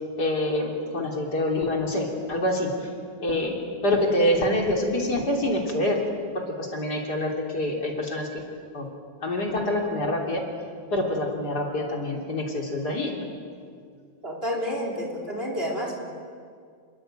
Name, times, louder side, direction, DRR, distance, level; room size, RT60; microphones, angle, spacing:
voice 1, 0.2-2.7 3.2-6.0 6.3-8.4 8.7-8.9 9.2-10.4 10.9-13.2, left 1 dB, 60° left, 1 dB, 3.8 m, -26 dB
voice 2, 14.2-15.9, equal, 30° right, 0 dB, 4.8 m, -29 dB
28.5 x 21.0 x 9.0 m, 2.2 s
omnidirectional pair, 2.0 m